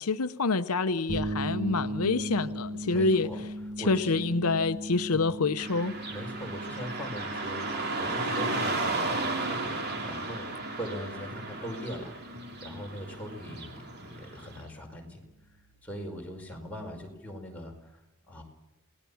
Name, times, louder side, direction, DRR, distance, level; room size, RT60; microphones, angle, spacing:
voice 1, 0.0-3.3 3.9-5.9, left 3 dB, 85° left, 0.8 m, -27 dB
sound 1, 1.1-17.0, right 1 dB, 75° right, 3.3 m, -40 dB
voice 2, 2.9-3.4 3.8-4.3 5.1-5.3 6.1-7.7 8.0-12.2 12.6-15.2 15.8-17.9 18.3-18.4, equal, 5° left, 5.1 m, -40 dB
Car passing by / Traffic noise roadway noise, 5.6-14.6, right 2 dB, 45° right, 3.2 m, -34 dB
28.0 x 19.0 x 7.1 m
head